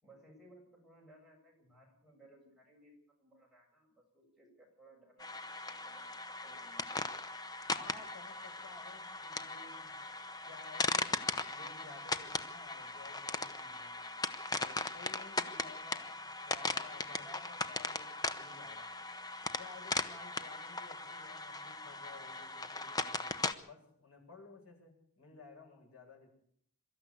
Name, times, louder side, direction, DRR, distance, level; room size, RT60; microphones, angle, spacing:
voice 1, 0.0-2.9 3.2-6.9, right 1 dB, ahead, -3 dB, 7.3 m, -62 dB
sound 1, 5.2-23.5, left 3 dB, 20° left, 0.9 m, -38 dB
voice 2, 7.6-9.9 10.4-14.1 14.6-19.0 19.6-26.3, left 3 dB, 90° left, 0 dB, 7.9 m, -55 dB
23.5 x 13.5 x 8.3 m, 0.64 s
head